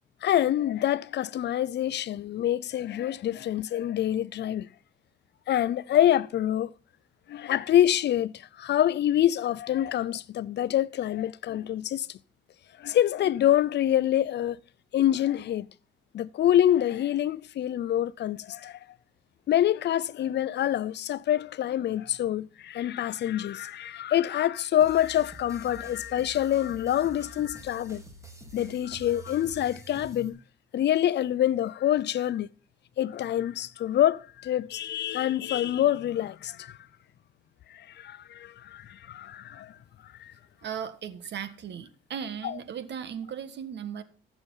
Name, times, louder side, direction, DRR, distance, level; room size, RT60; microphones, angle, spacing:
voice 1, 0.2-4.7 5.5-6.7 7.3-12.2 12.8-14.6 14.9-15.7 16.1-18.8 19.5-28.0 28.5-30.4 30.7-32.5 33.0-36.8 37.7-39.7 40.2-40.3 42.4-42.5, left 11 dB, 60° left, 0.6 m, -26 dB
sound 1, 24.8-30.3, right 3 dB, 15° right, 2.6 m, -47 dB
voice 2, 40.6-44.0, right 8 dB, 60° right, 1.5 m, -37 dB
14.5 x 7.0 x 5.4 m
cardioid pair, 90°, 20 cm